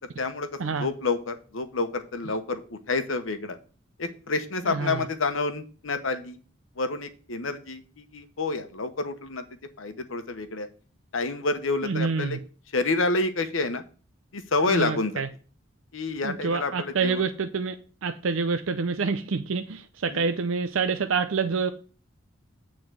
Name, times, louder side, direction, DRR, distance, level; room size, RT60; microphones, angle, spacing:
voice 1, 0.2-0.5 0.8-3.6 4.0-6.4 6.8-9.4 9.8-10.7 11.1-12.4 12.7-13.8 14.3-15.2 15.9-17.2 20.1-20.2, left 3 dB, 85° left, 1.0 m, -28 dB
voice 2, 4.6-5.1 11.8-12.4 14.7-15.3 16.2-17.8 18.0-21.7, right 5 dB, 85° right, 0.5 m, -27 dB
8.9 x 3.9 x 6.2 m
head